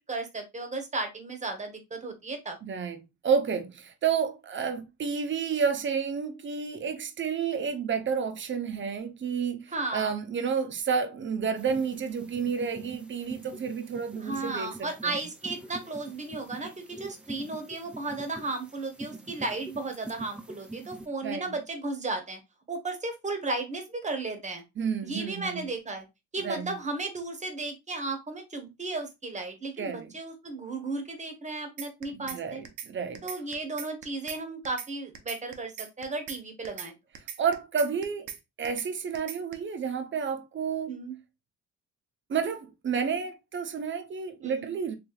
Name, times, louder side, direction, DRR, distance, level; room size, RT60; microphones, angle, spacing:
voice 1, 0.0-2.6 9.7-10.1 14.2-22.4 22.7-24.6 25.0-26.0 26.3-32.6 33.2-36.9 40.9-41.2 44.4-44.7, right 3 dB, 25° right, 1.0 m, -34 dB
voice 2, 2.6-15.3 21.2-21.5 24.8-25.7 26.4-26.8 29.8-30.1 32.1-33.2 37.4-38.3 38.6-41.0 42.3-45.0, right 6 dB, 40° right, 0.7 m, -30 dB
sound 1, 11.6-21.1, right 2 dB, 5° right, 0.4 m, -45 dB
sound 2, 31.8-32.4 32.6-32.9 33.1-34.4 34.6-34.9 35.1-36.4 36.6-36.9 37.1-38.4 38.6-38.9 39.1-39.5, right 9 dB, 85° right, 0.7 m, -39 dB
3.2 x 3.2 x 2.3 m
cardioid pair, 90°, 30 cm